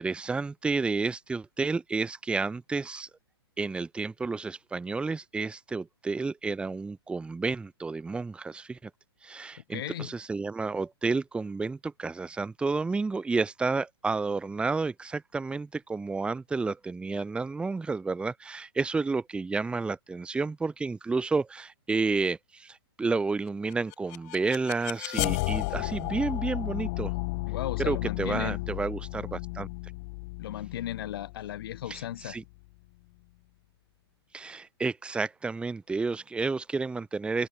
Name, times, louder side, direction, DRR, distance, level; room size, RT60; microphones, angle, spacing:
voice 1, 0.0-3.1 3.6-8.9 9.2-27.1 27.8-29.7 31.9-32.4 34.3-37.5, right 4 dB, 5° right, 1.5 m, -31 dB
voice 2, 9.7-10.1 27.5-28.6 30.4-32.4, left 12 dB, 60° left, 1.5 m, -36 dB
sound 1, 23.7-32.7, left 26 dB, 40° left, 2.1 m, -34 dB
open air
hypercardioid pair, 130°, 14 cm